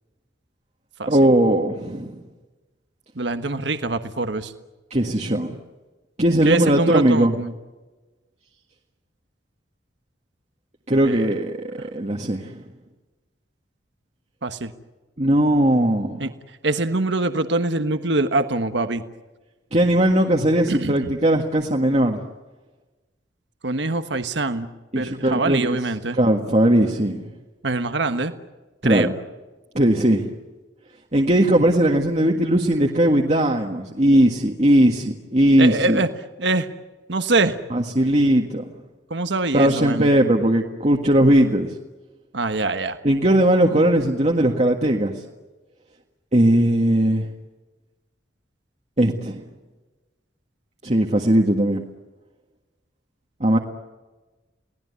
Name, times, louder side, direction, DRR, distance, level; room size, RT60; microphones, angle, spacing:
voice 1, 1.1-2.2 4.9-5.5 6.2-7.3 10.9-12.6 15.2-16.3 19.7-22.2 24.9-25.8 26.2-27.3 28.8-29.1 29.7-30.3 31.1-36.0 37.7-38.6 39.5-41.7 43.0-45.2 46.3-47.3 49.0-49.4 50.8-51.8 53.4-53.6, right 1 dB, 35° right, 0 dB, 1.7 m, -19 dB
voice 2, 3.2-4.5 6.4-7.5 11.0-11.2 14.4-14.7 16.2-16.3 16.6-19.0 20.7-21.1 23.6-24.7 24.9-26.2 27.6-28.3 28.8-29.1 35.6-36.1 36.4-36.7 37.1-37.6 39.1-40.1 42.3-43.0, right 2 dB, 75° right, 9 dB, 1.3 m, -24 dB
29.5 x 18.5 x 9.6 m, 1.2 s
head